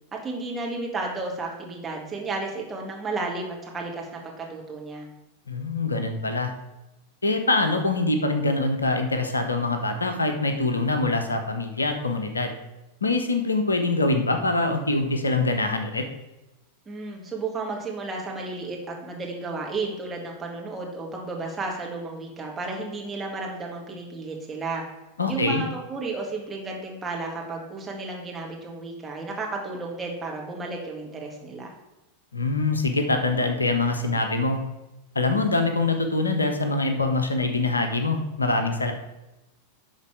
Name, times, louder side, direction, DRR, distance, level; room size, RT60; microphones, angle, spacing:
voice 1, 0.2-5.1 16.9-24.8 25.3-31.7, right 3 dB, 15° right, -1 dB, 1.9 m, -33 dB
voice 2, 5.5-6.5 7.2-12.5 13.0-16.0 25.2-25.6 32.3-34.6 35.1-38.9, left 2 dB, 75° left, 7 dB, 0.8 m, -24 dB
11.0 x 4.0 x 4.8 m, 0.98 s
figure-of-eight pair, 90°, 0 cm